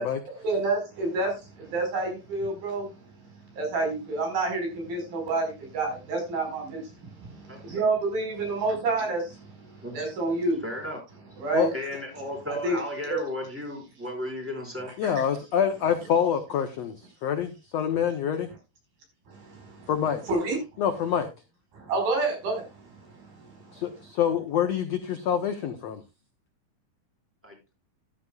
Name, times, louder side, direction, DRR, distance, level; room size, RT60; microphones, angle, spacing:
voice 1, 0.4-2.9 3.5-10.6 11.4-11.7 12.6-12.8 13.1-13.2 19.3-19.9 20.3-20.6 21.7-22.7 23.1-23.7, right 3 dB, 70° right, 6.7 m, -29 dB
voice 2, 7.5-7.8 9.8-10.0 10.6-11.0 11.7-14.9 27.4-27.6, left 1 dB, 5° right, 4.4 m, -34 dB
voice 3, 15.0-18.5 19.9-20.2 20.8-21.3 23.7-26.0, left 8 dB, 70° left, 1.6 m, -26 dB
13.5 x 11.5 x 2.4 m
omnidirectional pair, 4.3 m